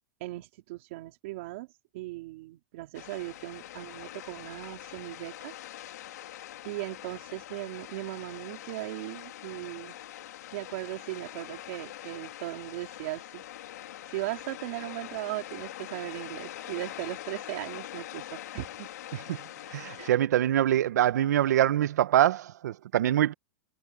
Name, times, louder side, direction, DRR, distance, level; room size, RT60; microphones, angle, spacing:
voice 1, 0.2-1.7 1.9-5.5 6.6-9.9 10.5-13.4 14.1-18.9 20.0-20.2, right 19 dB, 45° right, 3.1 m, -38 dB
sound 1, 2.9-20.1, left 13 dB, 75° left, 2.8 m, -43 dB
voice 2, 19.7-23.3, right 12 dB, 90° right, 0.9 m, -24 dB
supercardioid pair, 175°, 9 cm